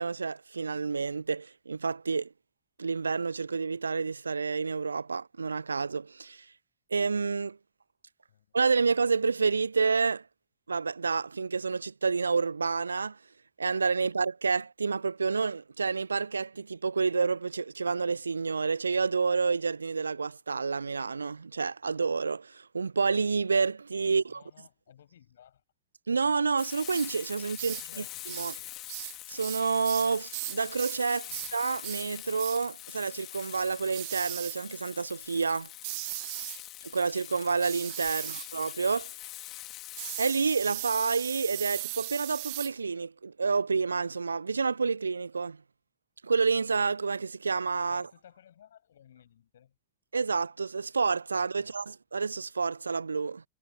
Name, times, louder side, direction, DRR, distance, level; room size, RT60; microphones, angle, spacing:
voice 1, 0.0-2.3 2.8-6.5 6.9-7.6 8.5-10.3 10.7-13.2 13.6-24.4 26.1-28.0 28.4-28.6 29.3-35.7 36.8-39.2 40.2-45.6 46.2-48.1 50.1-53.4, right 4 dB, 75° right, 0.4 m, -29 dB
voice 2, 24.0-25.6 27.5-28.7 31.3-31.5 38.1-38.3 47.9-49.7 51.6-51.8, left 10 dB, 65° left, 6.6 m, -57 dB
Frying (food), 26.6-40.3, left 16 dB, 35° left, 3.2 m, -44 dB
sound 1, 26.9-27.1 27.5-27.9 28.2-28.6 28.9-31.0 31.3-31.5 31.8-32.1 32.4-32.6 33.9-34.6 35.8-36.6 37.6-38.5 40.0-42.7, right 27 dB, 45° right, 1.0 m, -38 dB
figure-of-eight pair, 90°, 0 cm